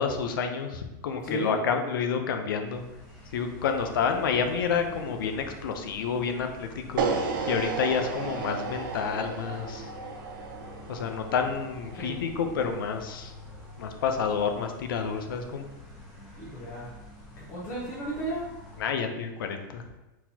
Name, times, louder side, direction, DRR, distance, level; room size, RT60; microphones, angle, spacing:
voice 1, 0.0-2.8 3.3-7.0 7.5-9.9 10.9-13.3 13.8-15.7 18.8-19.8, left 6 dB, 85° left, 6 dB, 0.6 m, -29 dB
voice 2, 1.2-1.5 11.9-12.1 16.4-16.9 17.4-18.4, right 1 dB, 25° left, -7 dB, 0.9 m, -34 dB
sound 1, 2.7-18.8, left 2 dB, 5° left, 1.3 m, -47 dB
sound 2, 7.0-13.1, right 5 dB, 80° right, 0.7 m, -34 dB
4.2 x 4.2 x 2.8 m, 1.1 s
supercardioid pair, 170°, 11 cm